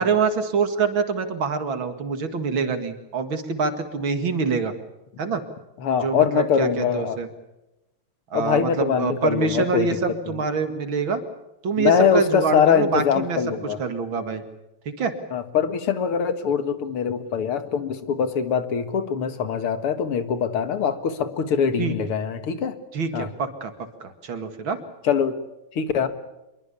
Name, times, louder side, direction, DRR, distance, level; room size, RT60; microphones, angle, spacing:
voice 1, 0.0-4.7 5.2-5.4 5.9-7.3 8.3-11.2 11.6-13.4 13.8-14.4 14.9-15.1 21.8-21.9 22.9-23.7 24.0-24.8, right 5 dB, 65° right, 8 dB, 2.9 m, -25 dB
voice 2, 5.8-7.2 8.3-9.9 11.8-13.8 15.3-22.8 23.1-23.3 25.0-25.4 25.7-26.1, left 7 dB, 90° left, 10 dB, 2.6 m, -23 dB
25.0 x 23.0 x 7.0 m, 0.96 s
omnidirectional pair, 2.4 m